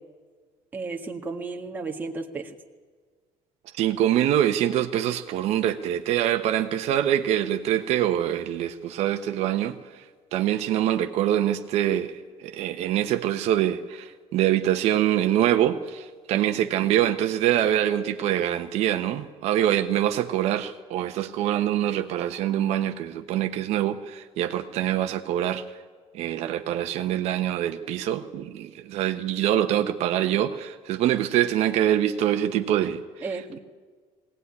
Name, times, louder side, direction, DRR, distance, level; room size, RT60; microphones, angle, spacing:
voice 1, 0.7-2.5 16.3-16.6 33.2-33.6, right 3 dB, 15° right, 3 dB, 1.6 m, -34 dB
voice 2, 3.8-9.7 10.3-25.6 26.1-33.3, right 11 dB, 60° right, 7 dB, 1.1 m, -24 dB
21.0 x 18.0 x 9.7 m, 1.5 s
cardioid pair, 165°, 12 cm